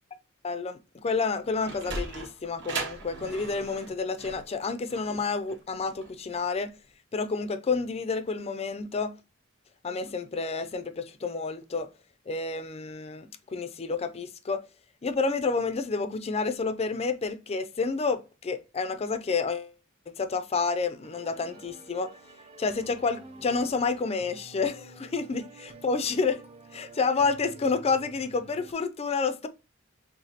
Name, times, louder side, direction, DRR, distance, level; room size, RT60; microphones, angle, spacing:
voice 1, 0.4-6.7 7.1-9.1 9.8-11.9 12.3-14.6 15.0-19.7 20.2-22.1 22.6-26.4 26.7-29.5, left 4 dB, 30° left, 0.4 m, -29 dB
Sliding door, 1.5-6.5, right 3 dB, 60° right, 1.2 m, -38 dB
sound 1, 21.0-28.7, right 2 dB, 30° right, 0.6 m, -50 dB
4.9 x 3.4 x 2.8 m
head